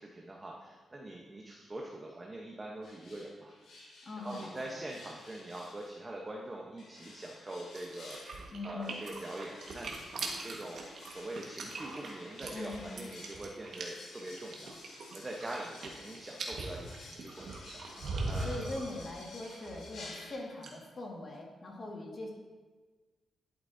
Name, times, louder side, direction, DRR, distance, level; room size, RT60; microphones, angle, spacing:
voice 1, 0.0-3.5 4.2-8.2 8.6-17.6 18.2-18.7, right 1 dB, 20° right, -2 dB, 1.0 m, -44 dB
sound 1, 2.8-6.0 6.8-20.8, left 2 dB, 80° left, 2.5 m, -53 dB
voice 2, 4.0-4.8 8.5-9.0 12.5-13.0 18.4-22.3, left 2 dB, 40° left, -1 dB, 1.9 m, -42 dB
sound 2, 7.7-20.2 20.5-20.7, right 3 dB, 65° right, 1.5 m, -41 dB
12.0 x 8.0 x 2.7 m, 1.3 s
cardioid pair, 110°, 0 cm